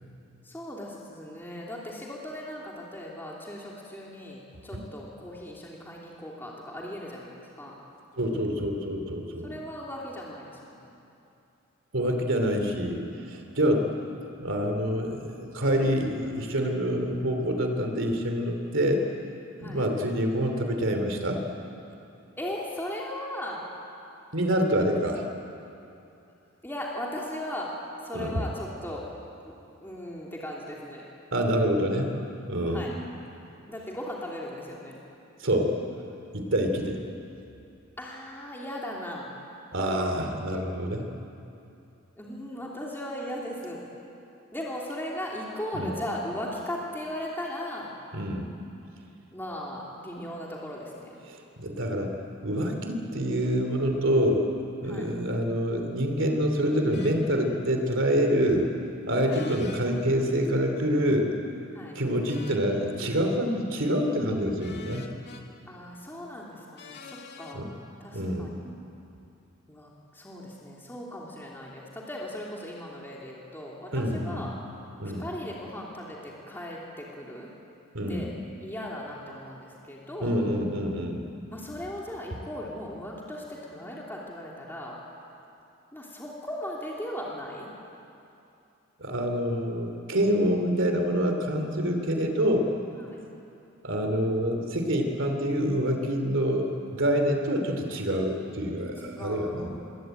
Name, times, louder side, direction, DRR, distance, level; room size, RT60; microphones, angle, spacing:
voice 1, 0.4-7.7 9.4-11.0 16.9-17.0 19.6-19.8 22.4-23.6 26.6-27.7 28.0-29.0 29.4-29.5 29.8-31.0 32.7-32.9 33.7-34.9 38.0-39.3 42.2-43.8 44.5-47.9 49.3-51.1 54.8-55.1 58.3-58.8 59.3-59.5 61.7-62.0 65.7-67.7 68.0-68.7 69.7-74.5 75.0-77.5 78.1-78.3 78.6-80.4 81.5-85.0 85.9-87.7 93.0-93.2 99.1-99.8, left 1 dB, 10° left, -4 dB, 3.0 m, -38 dB
voice 2, 8.2-9.5 11.9-13.9 14.4-19.0 19.6-21.4 24.3-25.3 28.1-28.4 31.3-32.2 32.5-32.9 35.4-35.8 36.3-37.0 39.7-41.1 45.7-45.9 48.1-48.5 51.3-52.1 52.4-54.5 54.8-58.7 59.1-61.3 61.9-65.1 67.5-67.7 68.1-68.6 73.9-74.5 75.0-75.2 77.9-78.3 80.2-81.2 89.0-92.7 93.8-99.7, equal, 65° right, 5 dB, 3.1 m, -26 dB
sound 1, 56.9-57.2 59.3-59.8 62.3-62.7 64.6-65.4 66.8-67.6, left 5 dB, 50° left, 2.3 m, -46 dB
25.5 x 22.0 x 9.2 m, 2.8 s
head